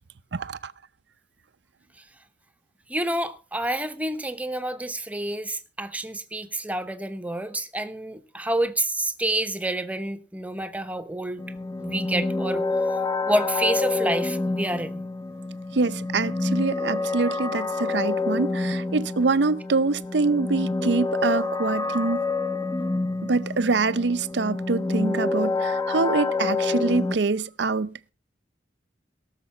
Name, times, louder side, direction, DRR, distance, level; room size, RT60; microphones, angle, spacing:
voice 1, 0.3-0.7 15.7-22.2 23.2-28.1, right 3 dB, 65° right, 0.6 m, -25 dB
voice 2, 2.9-11.4 11.8-12.6 13.3-15.0, right 1 dB, 10° right, 0.9 m, -28 dB
sound 1, 11.4-27.2, left 3 dB, 15° left, 0.5 m, -27 dB
18.0 x 6.7 x 5.6 m
head